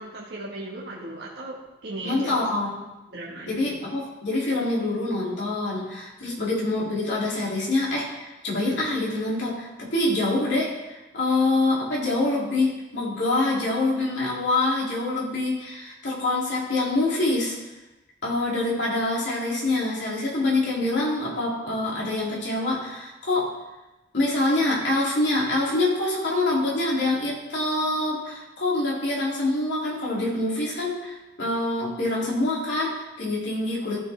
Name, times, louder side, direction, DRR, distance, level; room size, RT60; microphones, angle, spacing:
voice 1, 0.0-2.4 3.1-3.7, right 1 dB, 60° right, -6 dB, 1.5 m, -37 dB
voice 2, 2.0-2.8 3.5-17.5 18.2-23.5 24.1-34.0, left 2 dB, 70° left, -5 dB, 2.8 m, -25 dB
15.0 x 5.4 x 3.5 m, 1.0 s
head